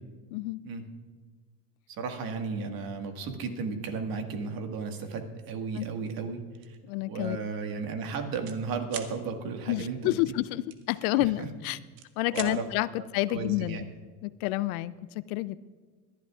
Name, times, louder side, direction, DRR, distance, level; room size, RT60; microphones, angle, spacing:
voice 1, 1.9-6.8 7.1-10.2 11.4-11.5 12.3-12.7 13.0-13.8, right 4 dB, 55° right, 5 dB, 1.8 m, -34 dB
sound 1, 6.6-6.8 7.2-7.4 7.7-8.6 8.9-9.1 10.7-11.5 11.8-12.5, right 10 dB, 75° right, 1.2 m, -41 dB
voice 2, 6.8-7.4 9.7-11.8 12.2-13.9 14.2-15.6, left 17 dB, 85° left, 18 dB, 0.5 m, -29 dB
23.0 x 11.5 x 2.4 m, 1.4 s
supercardioid pair, 110°, 42 cm